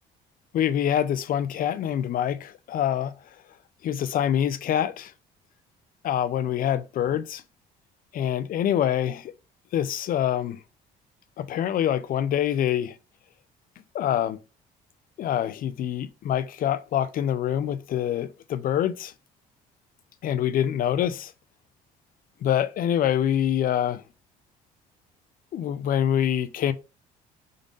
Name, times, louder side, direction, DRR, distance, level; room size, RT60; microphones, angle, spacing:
voice 1, 0.5-3.1 3.8-5.1 6.0-7.4 8.1-9.3 9.7-10.6 11.4-13.0 13.9-14.4 15.2-19.1 20.2-21.3 22.4-24.0 25.5-26.7, left 10 dB, 60° left, 0.7 m, -25 dB
5.1 x 3.9 x 5.3 m
cardioid pair, 90°, 16 cm